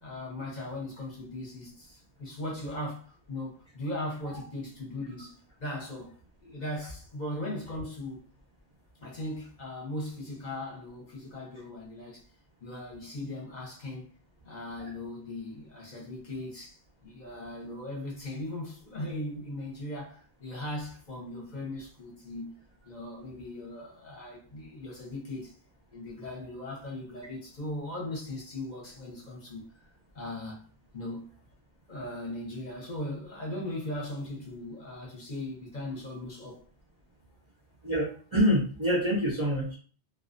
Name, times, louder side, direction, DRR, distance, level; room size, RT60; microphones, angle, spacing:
voice 1, 0.0-6.1 6.4-8.2 9.0-12.2 12.6-14.1 14.4-22.6 22.8-25.5 25.9-29.7 30.1-30.6 30.9-31.3 31.9-36.6, left 1 dB, 45° left, 0.8 m, -38 dB
voice 2, 37.8-39.7, equal, 40° right, 0.5 m, -26 dB
2.4 x 2.2 x 2.4 m
omnidirectional pair, 1.1 m